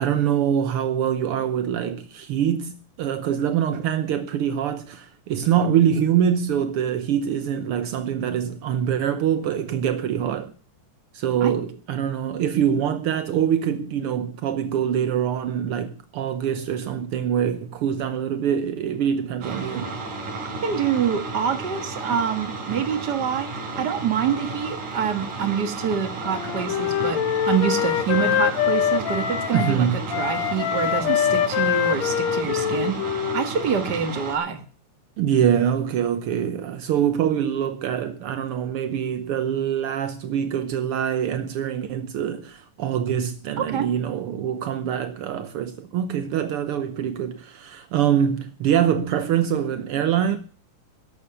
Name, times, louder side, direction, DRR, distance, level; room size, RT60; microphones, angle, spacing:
voice 1, 0.0-10.5 11.1-20.0 29.5-30.0 35.2-50.4, right 9 dB, 75° right, 1.3 m, -24 dB
sound 1, 19.4-34.4, right 3 dB, 90° right, 5.9 m, -33 dB
voice 2, 20.6-33.0 33.3-34.6 43.6-43.9, right 7 dB, 40° right, 1.8 m, -26 dB
Wind instrument woodwind instrument, 26.2-29.8 30.1-33.9, left 10 dB, 65° left, 2.1 m, -24 dB
14.0 x 11.0 x 6.9 m
omnidirectional pair, 3.6 m